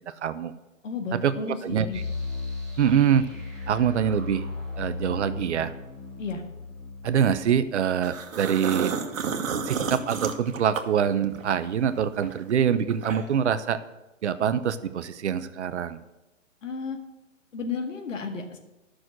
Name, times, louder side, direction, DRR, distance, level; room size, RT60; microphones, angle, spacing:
voice 1, 0.1-0.5 1.2-1.3 1.6-1.9 2.8-3.3 3.7-4.4 4.8-5.7 7.0-8.9 9.6-13.8 14.2-16.0, right 8 dB, 60° right, 12 dB, 0.8 m, -24 dB
voice 2, 0.8-2.0 6.2-6.4 16.6-17.0 17.5-18.6, left 4 dB, 70° left, 4 dB, 2.0 m, -33 dB
sound 1, 1.9-8.7, left 3 dB, ahead, 2.2 m, -36 dB
sound 2, 8.0-11.6 12.0-13.5, right 6 dB, 80° right, 1.4 m, -31 dB
11.5 x 6.4 x 6.3 m, 1.0 s
hypercardioid pair, 155°, 39 cm